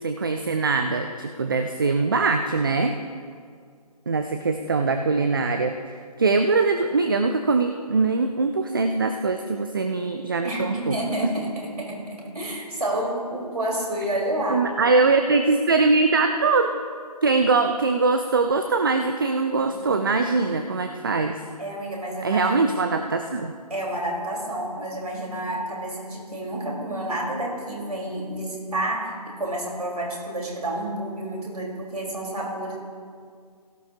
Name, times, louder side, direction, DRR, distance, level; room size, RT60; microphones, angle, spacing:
voice 1, 0.0-3.0 4.1-11.0 14.5-16.7 17.2-21.4 22.2-23.5, right 3 dB, 35° right, 7 dB, 0.4 m, -22 dB
voice 2, 10.4-14.7 19.7-20.0 21.6-22.6 22.9-23.0 23.7-32.8, right 1 dB, 70° right, -2 dB, 3.4 m, -29 dB
16.5 x 12.5 x 2.5 m, 2.1 s
figure-of-eight pair, 145°, 21 cm